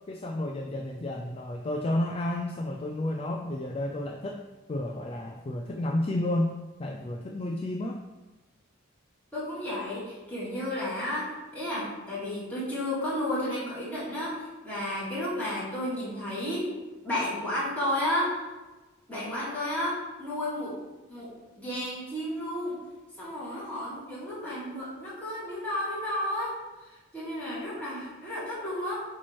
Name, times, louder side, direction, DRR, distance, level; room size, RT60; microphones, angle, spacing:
voice 1, 0.1-4.4 4.7-6.5 6.8-8.0, left 1 dB, 30° left, 3 dB, 0.3 m, -31 dB
voice 2, 9.3-16.7 17.0-18.4 19.1-20.8 21.1-21.3 21.6-22.8 23.2-26.6 27.1-29.0, left 1 dB, 10° left, -9 dB, 2.2 m, -32 dB
8.4 x 3.0 x 4.5 m, 1.1 s
head